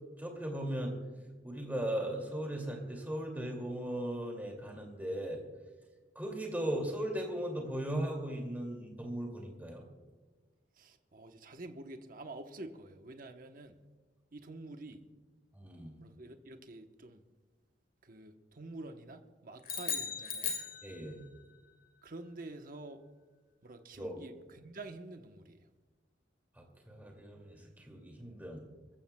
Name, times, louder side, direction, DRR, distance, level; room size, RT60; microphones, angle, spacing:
voice 1, 0.2-1.0 1.4-5.4 6.2-9.8 15.5-16.0 20.8-21.2 24.0-24.2 26.6-28.6, right 1 dB, 10° right, 1 dB, 2.3 m, -38 dB
voice 2, 10.8-13.8 14.3-15.0 16.0-17.2 18.0-20.5 22.0-23.0 23.6-25.6, right 2 dB, 50° right, 6 dB, 1.0 m, -48 dB
sound 1, 19.6-21.4, left 6 dB, 50° left, 2.1 m, -37 dB
26.5 x 14.5 x 2.2 m, 1.3 s
head